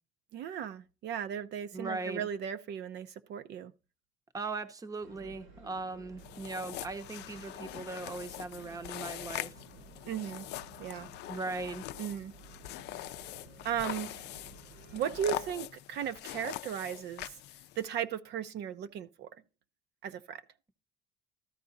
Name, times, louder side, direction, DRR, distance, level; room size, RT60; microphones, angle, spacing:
voice 1, 0.3-3.7 10.1-10.5 10.8-11.1 12.0-12.3 13.6-14.3 14.9-17.4 17.8-19.3 20.0-20.4, right 9 dB, 55° right, 0.7 m, -36 dB
voice 2, 1.7-2.3 4.3-9.5 11.3-11.8, right 3 dB, 15° right, 0.8 m, -39 dB
sound 1, 5.0-15.5, right 3 dB, 85° right, 5.7 m, -54 dB
sound 2, 6.2-17.9, left 15 dB, 55° left, 0.5 m, -43 dB
13.5 x 4.7 x 4.0 m
cardioid pair, 150°, 20 cm